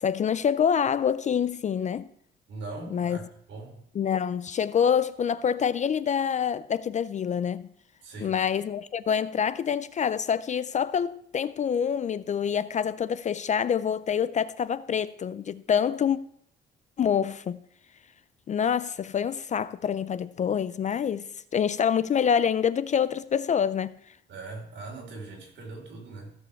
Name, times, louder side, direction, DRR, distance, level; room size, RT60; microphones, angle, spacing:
voice 1, 0.0-2.1 2.9-3.2 4.0-7.7 8.2-16.2 17.0-17.6 18.5-21.3 21.5-24.0, left 7 dB, 35° left, 0.4 m, -26 dB
voice 2, 2.5-3.8 8.0-8.4 24.3-26.3, right 3 dB, 65° right, 4.0 m, -40 dB
15.5 x 5.3 x 7.0 m
cardioid pair, 150°, 21 cm